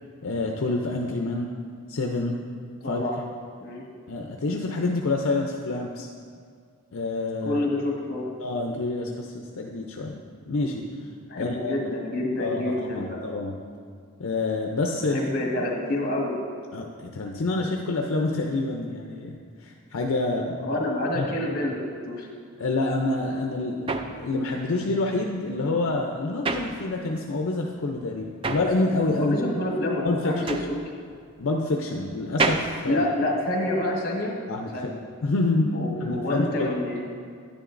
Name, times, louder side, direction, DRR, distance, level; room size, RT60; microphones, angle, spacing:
voice 1, 0.2-1.5 1.9-2.4 2.9-3.0 4.1-6.1 6.9-7.6 8.4-10.2 10.5-10.9 11.4-11.7 12.4-13.5 14.2-15.2 16.7-20.6 21.1-21.3 22.6-29.4 30.0-30.3 31.4-33.1 34.5-34.9 35.2-36.7, left 2 dB, 70° left, 1 dB, 0.5 m, -27 dB
voice 2, 2.8-3.2 3.6-3.8 7.4-8.3 11.3-13.2 15.1-16.4 20.6-22.3 29.2-30.6 32.9-34.4 34.7-35.0 35.7-37.0, left 1 dB, 45° left, -1 dB, 1.5 m, -28 dB
sound 1, 23.1-27.4 27.7-33.9, right 3 dB, 25° right, 0.3 m, -32 dB
10.5 x 9.9 x 2.5 m, 2.1 s
head